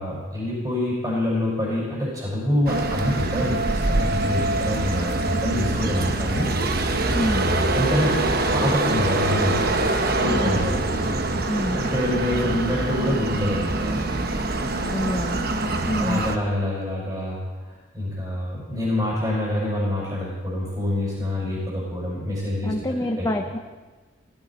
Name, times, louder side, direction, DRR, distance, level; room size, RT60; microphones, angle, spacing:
voice 1, 0.0-6.5 7.7-8.2 8.5-9.7 10.2-10.8 11.7-14.2 16.0-17.4 17.9-23.3, left 1 dB, 20° right, -6 dB, 6.0 m, -26 dB
sound 1, 2.7-16.4, right 2 dB, 50° right, 1.0 m, -24 dB
voice 2, 7.1-7.5 10.1-10.6 11.5-11.8 14.9-15.4 15.9-16.2 22.6-23.6, equal, 20° left, 3 dB, 0.8 m, -26 dB
16.5 x 16.0 x 4.4 m, 1.3 s
head